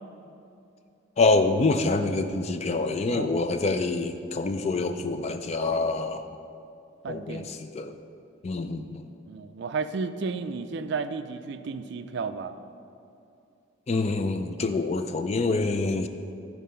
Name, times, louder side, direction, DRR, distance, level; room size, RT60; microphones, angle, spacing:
voice 1, 1.2-6.2 7.1-7.9 8.4-9.1 13.9-16.1, left 3 dB, 30° left, 8 dB, 0.3 m, -26 dB
voice 2, 7.0-7.5 9.3-12.6, right 4 dB, 60° right, 10 dB, 0.3 m, -33 dB
10.5 x 4.1 x 5.5 m, 2.6 s
head